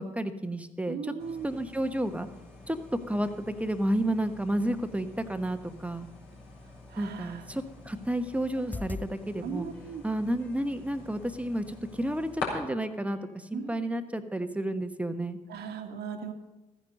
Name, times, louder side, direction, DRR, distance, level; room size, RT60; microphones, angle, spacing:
voice 1, 0.0-1.2 1.4-2.3 2.7-2.8 3.1-6.1 7.0-9.7 10.0-13.2 13.5-15.4, right 1 dB, 5° right, 9 dB, 1.1 m, -31 dB
voice 2, 0.9-1.5 6.9-7.4 9.4-10.0 13.5-13.8 15.5-16.3, right 6 dB, 60° right, 6 dB, 1.5 m, -38 dB
sound 1, 1.2-12.5, left 4 dB, 70° left, 4.1 m, -46 dB
sound 2, 8.6-9.1 9.7-10.7 11.8-11.9 12.4-12.7 13.1-13.4 13.8-13.9, left 3 dB, 10° left, 0.5 m, -42 dB
14.5 x 9.8 x 5.3 m, 1.1 s
hypercardioid pair, 45°, 19 cm